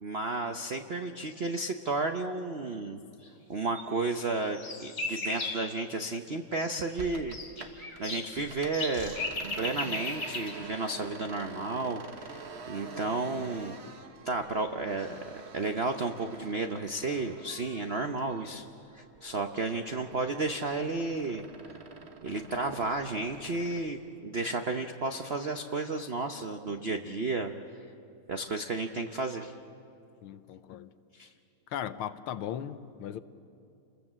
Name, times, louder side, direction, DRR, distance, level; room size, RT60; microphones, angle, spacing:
voice 1, 0.0-3.0 3.5-7.4 8.0-9.2 9.6-13.8 14.2-15.2 15.5-18.6 18.9-21.7 22.2-27.5 28.3-29.6 31.1-31.3, right 3 dB, 85° right, 0.5 m, -32 dB
sound 1, 3.7-3.8 4.1-5.7 6.9-10.5, left 2 dB, 40° left, 3.1 m, -36 dB
sound 2, 7.0-8.0 8.3-18.7 19.0-23.9, right 4 dB, 40° right, 1.1 m, -47 dB
voice 2, 30.2-30.9 31.7-33.2, left 10 dB, 80° left, 1.6 m, -37 dB
29.0 x 21.0 x 7.4 m
omnidirectional pair, 2.4 m